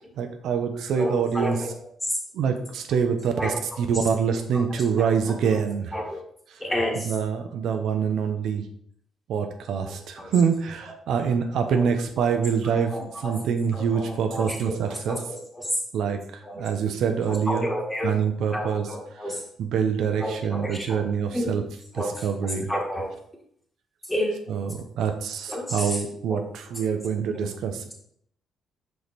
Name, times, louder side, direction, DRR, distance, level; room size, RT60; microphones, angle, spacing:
voice 1, 0.2-1.6 2.3-6.0 6.5-6.6 7.1-8.6 9.3-15.2 15.9-17.7 18.0-18.9 19.6-21.6 21.9-22.7 24.5-27.9, right 6 dB, 75° right, 6 dB, 0.7 m, -25 dB
voice 2, 0.9-1.7 2.0-2.2 3.4-3.6 3.9-4.0 4.5-5.1 5.5-5.6 5.9-6.2 6.6-7.1 9.8-10.3 11.8-11.9 12.9-13.4 13.7-14.7 15.1-15.8 16.4-16.6 17.3-18.2 18.5-19.4 20.2-21.0 21.3-21.5 21.9-23.1 24.1-24.3 25.5-26.0 26.3-26.4, equal, 10° left, 0 dB, 1.6 m, -31 dB
5.1 x 4.6 x 4.1 m, 0.67 s
cardioid pair, 90°, 0 cm